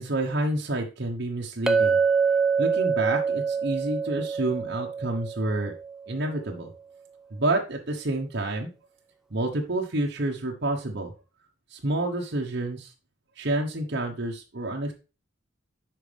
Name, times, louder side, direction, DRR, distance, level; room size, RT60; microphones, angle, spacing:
voice 1, 0.0-2.0 2.6-5.7 6.1-6.7 7.3-8.7 9.3-11.1 11.7-12.9 13.4-14.9, right 2 dB, 60° right, 0 dB, 1.1 m, -29 dB
Chink clink, 1.7-6.1, right 5 dB, 5° right, 0.4 m, -25 dB
9.0 x 5.2 x 3.4 m, 0.31 s
head